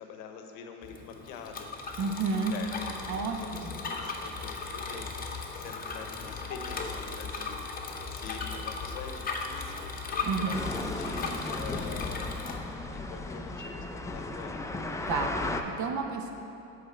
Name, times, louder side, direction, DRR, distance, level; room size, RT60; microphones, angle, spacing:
voice 1, 0.0-1.7 2.3-9.9 10.3-12.3 12.6-14.6, left 6 dB, 80° left, 5 dB, 0.9 m, -45 dB
Bicycle, 0.8-12.6, left 4 dB, 25° left, 0.9 m, -37 dB
voice 2, 2.0-2.5 3.1-3.7 10.2-10.6 15.1-16.3, right 4 dB, 50° right, 4 dB, 1.0 m, -31 dB
sound 1, 10.5-15.6, left 2 dB, 10° left, 0.4 m, -35 dB
9.0 x 3.5 x 6.6 m, 2.7 s
supercardioid pair, 90°, 36 cm